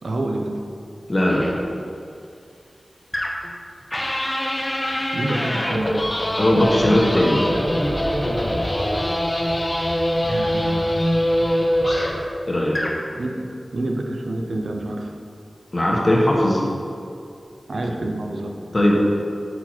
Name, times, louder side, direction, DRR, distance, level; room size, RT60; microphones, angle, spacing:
voice 1, 0.0-0.6 5.1-6.0 10.2-11.3 13.2-15.1 17.7-18.6, right 1 dB, 80° right, 2 dB, 0.6 m, -28 dB
voice 2, 1.1-1.4 6.4-7.4 11.9-12.0 12.5-12.8 15.7-16.6 18.7-18.9, left 1 dB, 40° left, -3 dB, 1.1 m, -18 dB
sound 1, 1.3-1.5 3.1-3.5 3.9-12.3 12.7-13.0, equal, 25° left, 0.7 m, -23 dB
5.9 x 4.6 x 4.3 m, 2.4 s
wide cardioid pair, 60°, 0 cm